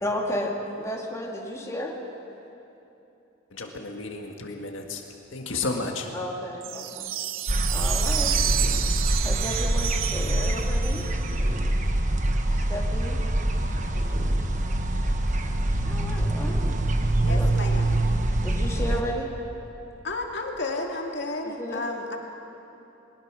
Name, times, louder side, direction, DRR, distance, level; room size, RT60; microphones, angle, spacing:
voice 1, 0.0-1.9 6.1-7.1 7.7-8.3 9.2-11.0 12.5-13.2 15.8-16.6 17.3-17.5 18.4-19.3 21.4-21.8, equal, 15° left, -1 dB, 2.2 m, -33 dB
voice 2, 3.5-5.0 5.3-6.1, left 3 dB, 80° left, 2 dB, 1.8 m, -32 dB
sound 1, 6.6-11.4, right 12 dB, 85° right, 0.8 m, -30 dB
sound 2, 7.5-19.0, right 1 dB, 40° right, 1.3 m, -25 dB
voice 3, 17.2-18.0 20.0-22.2, left 2 dB, 60° left, 1 dB, 2.2 m, -32 dB
22.0 x 20.0 x 6.2 m, 3.0 s
head